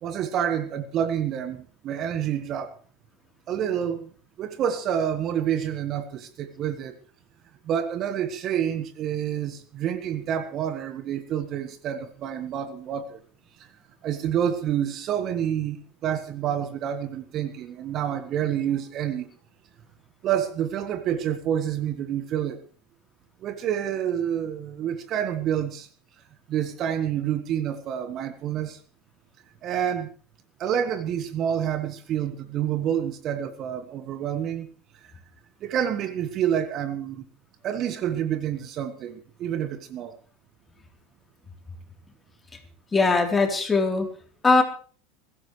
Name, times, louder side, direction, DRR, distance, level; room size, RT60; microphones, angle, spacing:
voice 1, 0.0-2.8 3.5-4.1 4.4-6.9 7.6-13.2 14.0-19.3 20.2-22.6 23.4-25.9 26.5-28.8 29.6-30.1 30.6-34.7 35.6-37.3 37.6-40.2, right 9 dB, 40° right, 11 dB, 1.5 m, -28 dB
voice 2, 42.9-44.1 44.4-44.6, left 3 dB, 20° left, 3 dB, 3.6 m, -20 dB
22.0 x 15.0 x 3.3 m, 0.41 s
figure-of-eight pair, 80°, 0 cm